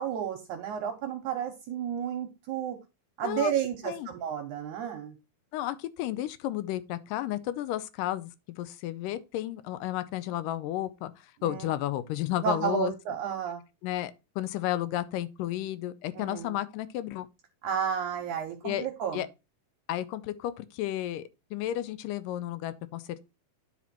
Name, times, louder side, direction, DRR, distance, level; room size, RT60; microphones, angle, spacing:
voice 1, 0.0-2.8 3.2-5.1 11.4-11.7 12.4-13.6 16.2-16.5 17.6-19.2, right 8 dB, 70° right, 2.3 m, -32 dB
voice 2, 5.5-8.3 8.6-11.1 11.4-12.9 13.8-17.3 18.6-18.9 19.1-19.3 19.9-23.0, left 13 dB, 80° left, 2.3 m, -32 dB
10.0 x 4.3 x 4.4 m
omnidirectional pair, 3.9 m